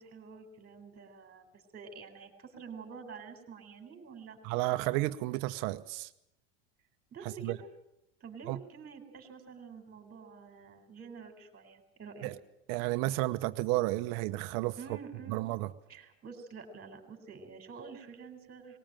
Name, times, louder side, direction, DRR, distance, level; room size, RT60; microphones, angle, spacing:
voice 1, 0.0-4.4 7.1-7.7 8.2-12.3 14.8-15.4 15.9-18.8, right 5 dB, 25° right, 5 dB, 4.2 m, -48 dB
voice 2, 4.4-6.1 7.4-7.6 8.5-8.6 12.2-12.3 12.7-14.8 15.3-15.7, right 18 dB, 60° right, 11 dB, 1.0 m, -32 dB
20.0 x 18.0 x 9.0 m, 0.81 s
supercardioid pair, 125°, 38 cm